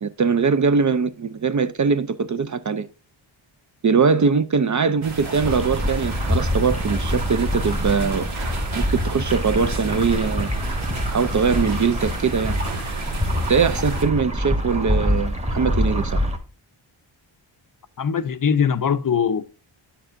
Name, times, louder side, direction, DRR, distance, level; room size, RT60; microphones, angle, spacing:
voice 1, 0.0-2.9 3.8-8.3 8.7-10.5 11.1-12.6 13.5-16.2, right 5 dB, 40° right, 0.5 m, -21 dB
sound 1, 5.0-14.0, right 3 dB, 75° right, 1.7 m, -33 dB
sound 2, 5.4-16.4, equal, 15° right, 1.3 m, -25 dB
voice 2, 18.0-19.5, left 7 dB, 45° left, 0.5 m, -21 dB
8.7 x 6.7 x 2.5 m
wide cardioid pair, 85°, 48 cm